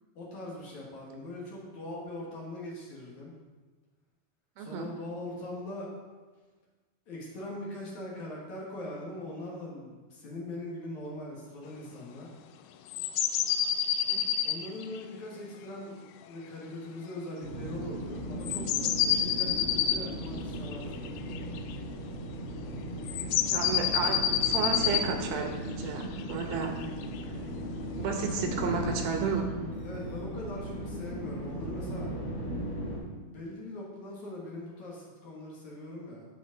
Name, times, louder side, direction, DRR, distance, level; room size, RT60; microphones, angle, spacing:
voice 1, 0.2-3.3 4.6-5.9 7.1-12.3 14.4-21.1 23.5-23.9 29.8-32.1 33.3-36.2, left 1 dB, 60° left, -4 dB, 2.7 m, -41 dB
voice 2, 4.6-4.9 14.1-14.2 23.5-26.7 28.0-29.5, right 5 dB, 75° right, 4 dB, 2.7 m, -32 dB
sound 1, 12.9-15.0 18.4-21.7 23.1-25.1 26.0-27.2 28.3-28.4, left 9 dB, 90° left, 1.9 m, -28 dB
sound 2, 17.4-33.0, equal, 40° left, 2.9 m, -37 dB
15.0 x 5.0 x 4.0 m, 1.3 s
omnidirectional pair, 4.4 m